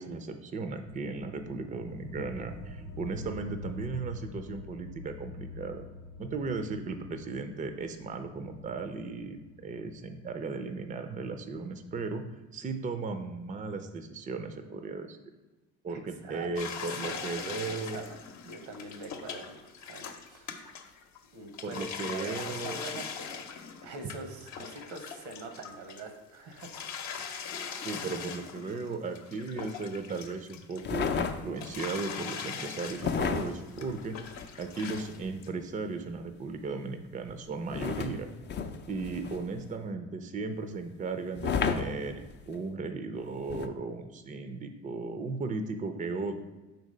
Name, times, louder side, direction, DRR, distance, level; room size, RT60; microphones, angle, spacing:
voice 1, 0.0-5.8 6.2-12.2 12.5-15.2 15.8-18.0 21.6-22.8 27.8-34.2 34.6-38.3 38.9-46.4, right 4 dB, 20° right, 8 dB, 0.5 m, -36 dB
sound 1, 0.9-11.9, left 3 dB, 80° left, 0.7 m, -46 dB
voice 2, 15.9-16.5 17.0-18.2 18.4-20.9 21.3-23.5 23.8-26.7, right 3 dB, 75° right, 6 dB, 1.1 m, -44 dB
sound 2, 16.6-21.2 21.5-26.1 26.5-31.3 31.6-35.2 35.4-35.5, left 7 dB, 55° left, 0.8 m, -41 dB
sound 3, 30.8-31.8 33.0-35.3 37.7-39.6 41.4-42.6 43.5-43.7, left 6 dB, 30° left, 0.5 m, -33 dB
4.4 x 4.0 x 5.4 m, 1.2 s
supercardioid pair, 80°, 35 cm